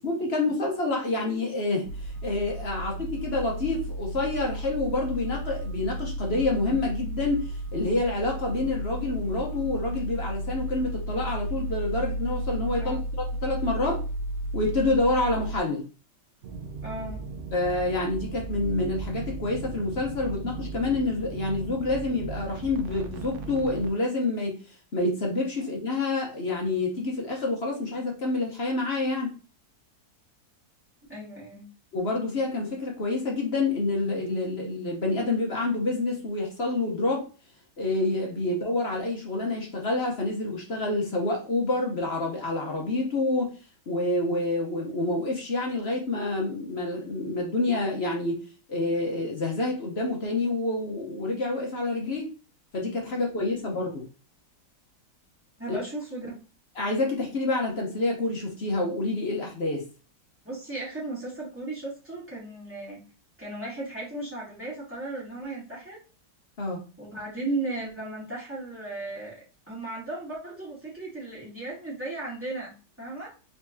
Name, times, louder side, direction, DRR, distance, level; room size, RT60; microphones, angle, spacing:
voice 1, 0.0-14.0 14.5-15.9 17.5-24.6 24.9-29.3 31.9-37.3 37.8-43.5 43.9-48.4 48.7-52.3 52.7-54.0 55.7-55.8 56.8-59.8 66.6-66.8, left 2 dB, 45° left, 0 dB, 1.1 m, -28 dB
sound 1, 1.9-15.6, right 1 dB, 90° right, 1.6 m, -33 dB
sound 2, 16.4-23.9, right 4 dB, 60° right, 0.8 m, -37 dB
voice 2, 16.8-17.2 31.1-31.7 55.6-56.3 60.4-63.0 63.4-66.0 67.0-69.4 69.7-73.3, right 2 dB, 5° right, -8 dB, 2.5 m, -36 dB
4.3 x 4.0 x 2.7 m, 0.35 s
omnidirectional pair, 1.8 m